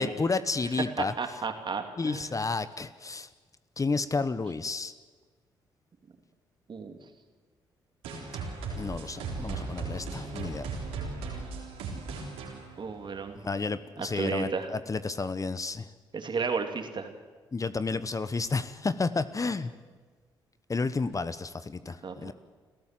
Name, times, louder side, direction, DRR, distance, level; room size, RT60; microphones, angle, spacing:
voice 1, 0.0-1.1 2.0-3.3 3.8-4.9 8.8-10.7 13.4-15.9 17.5-19.7 20.7-22.3, left 4 dB, 35° left, 14 dB, 1.1 m, -31 dB
voice 2, 1.0-2.4 6.7-7.0 12.8-13.5 14.0-14.7 16.1-17.1 22.0-22.3, right 5 dB, 50° right, 6 dB, 2.9 m, -33 dB
sound 1, 8.0-13.5, right 4 dB, 85° right, 3.9 m, -37 dB
29.0 x 14.0 x 7.7 m, 1.4 s
hypercardioid pair, 45°, 10 cm